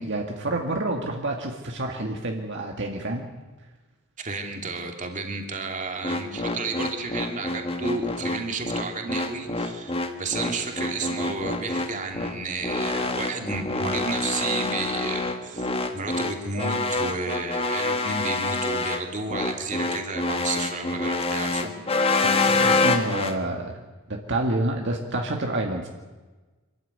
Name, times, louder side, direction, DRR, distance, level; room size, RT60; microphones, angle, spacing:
voice 1, 0.0-3.2 22.2-23.7 24.1-25.9, right 2 dB, 55° right, 1 dB, 2.1 m, -28 dB
voice 2, 4.2-21.7, right 3 dB, 35° right, 3 dB, 2.7 m, -32 dB
sound 1, 6.0-23.4, left 3 dB, 25° left, 1.6 m, -26 dB
26.0 x 14.0 x 9.6 m, 1.2 s
head